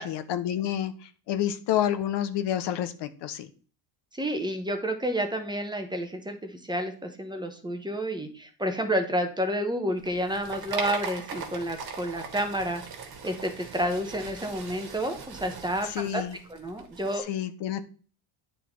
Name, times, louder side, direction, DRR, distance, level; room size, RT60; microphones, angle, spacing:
voice 1, 0.0-3.5 15.9-16.4 17.2-17.8, left 11 dB, 60° left, 11 dB, 0.9 m, -29 dB
voice 2, 4.2-12.8 13.2-16.2 16.5-17.2, equal, 10° right, 5 dB, 1.0 m, -30 dB
sound 1, 10.0-17.2, right 5 dB, 50° right, 1.8 m, -40 dB
9.4 x 4.1 x 4.5 m, 0.40 s
cardioid pair, 145°, 47 cm